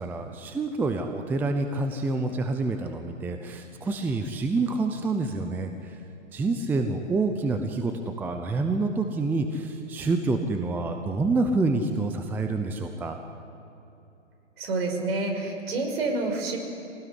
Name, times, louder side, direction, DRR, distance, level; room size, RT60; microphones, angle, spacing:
voice 1, 0.0-5.9 6.3-7.9 8.2-13.2, right 3 dB, 5° right, 6 dB, 0.6 m, -27 dB
voice 2, 14.6-16.6, right 3 dB, 50° right, 3 dB, 5.7 m, -28 dB
24.5 x 18.0 x 9.9 m, 2.8 s
hypercardioid pair, 130°, 38 cm